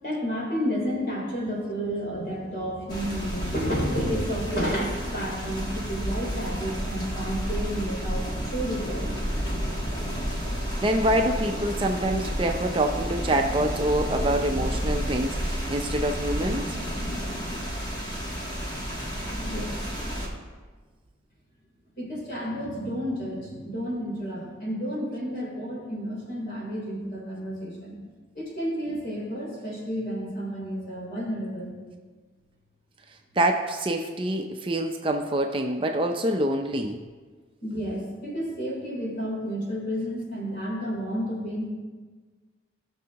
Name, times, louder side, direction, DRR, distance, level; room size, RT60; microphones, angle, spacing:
voice 1, 0.0-9.1 19.4-19.7 22.0-28.0 28.3-31.7 37.6-41.7, equal, 45° left, -4 dB, 3.3 m, -31 dB
sound 1, 2.9-20.3, equal, 20° left, 1.4 m, -31 dB
voice 2, 10.5-16.8 33.4-37.0, right 1 dB, 25° right, 3 dB, 0.5 m, -26 dB
17.5 x 6.3 x 2.9 m, 1.4 s
head